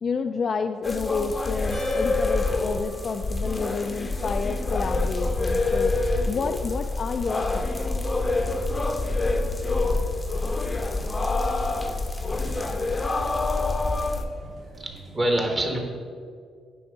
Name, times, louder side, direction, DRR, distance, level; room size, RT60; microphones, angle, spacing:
voice 1, 0.0-5.9 6.3-7.7, left 5 dB, 45° left, 6 dB, 0.3 m, -30 dB
sound 1, 0.8-14.2, left 2 dB, 25° left, 0.7 m, -26 dB
sound 2, 1.7-4.3 4.9-5.5 5.8-5.9 9.1-9.2, right 1 dB, 80° right, 1.7 m, -44 dB
sound 3, 1.9-15.2, right 3 dB, 50° right, 1.2 m, -49 dB
voice 2, 14.8-15.8, right 1 dB, 30° right, 2 dB, 1.4 m, -25 dB
9.3 x 3.5 x 5.3 m, 2.1 s
cardioid pair, 90°, 0 cm